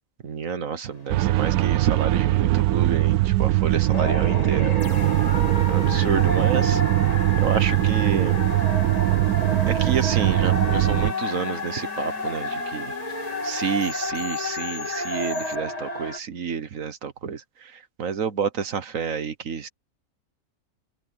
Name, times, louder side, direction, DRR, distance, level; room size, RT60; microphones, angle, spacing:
voice 1, 0.2-4.7 5.7-6.8 7.4-8.4 9.7-13.2 13.4-19.7, right 6 dB, 65° right, 1.5 m, -29 dB
sound 1, 0.9-3.1 3.4-3.6 3.8-16.2, left 2 dB, 25° left, 2.2 m, -31 dB
sound 2, 1.1-11.1, right 16 dB, 80° right, 1.0 m, -21 dB
sound 3, 4.8-15.6, left 7 dB, 85° left, 1.8 m, -42 dB
open air
omnidirectional pair, 1.5 m